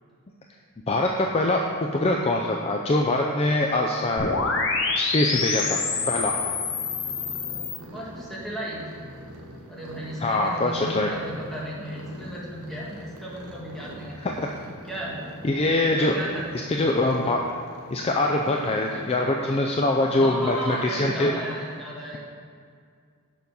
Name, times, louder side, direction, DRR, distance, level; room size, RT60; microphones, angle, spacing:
voice 1, 0.9-1.6 1.9-4.3 5.0-5.8 6.1-6.3 10.2-11.1 14.2-14.5 15.4-16.2 16.7-17.4 17.9-21.3, left 2 dB, 25° left, 1 dB, 0.4 m, -23 dB
sound 1, 4.2-7.8, left 4 dB, 55° left, 1.0 m, -27 dB
sound 2, 5.9-19.6, equal, 85° right, 1.2 m, -44 dB
voice 2, 7.3-8.8 9.7-14.4 14.8-15.3 15.8-16.5 20.0-22.2, equal, ahead, -6 dB, 1.6 m, -35 dB
6.8 x 6.2 x 5.4 m, 2.2 s
head